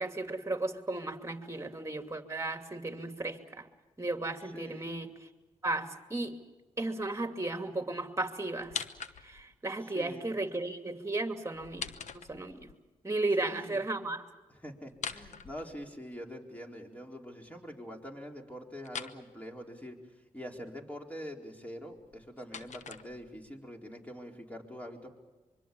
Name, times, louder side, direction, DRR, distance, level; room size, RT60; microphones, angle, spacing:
voice 1, 0.0-3.7 4.0-5.1 5.6-6.3 6.8-8.7 9.2-12.7 13.0-14.2, right 2 dB, 20° right, 6 dB, 2.6 m, -35 dB
voice 2, 4.5-5.0 9.8-10.3 13.4-13.8 14.5-20.0 20.3-25.1, equal, 10° left, 1 dB, 4.4 m, -45 dB
sound 1, 8.6-9.6 11.5-12.8 14.9-16.2 18.8-19.2 21.9-23.5, left 7 dB, 70° left, 1.1 m, -42 dB
24.5 x 23.5 x 7.1 m, 1.2 s
supercardioid pair, 50°, 13 cm